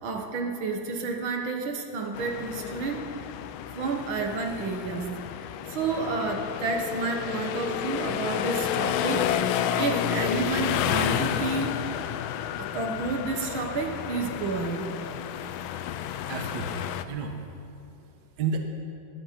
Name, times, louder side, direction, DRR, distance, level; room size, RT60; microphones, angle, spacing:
voice 1, 0.0-3.1 3.8-5.1 5.7-9.3 9.8-11.7 12.6-14.9, right 4 dB, 80° right, 3 dB, 2.1 m, -30 dB
sound 1, 2.1-17.0, left 10 dB, 85° left, 1.4 m, -30 dB
voice 2, 16.0-17.5 18.0-18.6, right 5 dB, 60° right, 4 dB, 1.6 m, -33 dB
17.0 x 11.5 x 5.9 m, 2.7 s
omnidirectional pair, 2.2 m